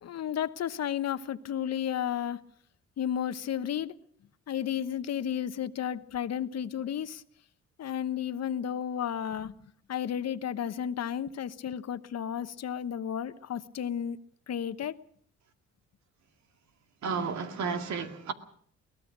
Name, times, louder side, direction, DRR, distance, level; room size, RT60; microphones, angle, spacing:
voice 1, 0.0-2.4 3.0-3.9 4.5-7.2 7.8-9.5 9.9-14.2 14.5-15.0, left 9 dB, 55° left, 1.1 m, -32 dB
voice 2, 17.0-18.3, right 5 dB, 65° right, 2.3 m, -32 dB
22.5 x 19.0 x 6.1 m
cardioid pair, 90°, 30 cm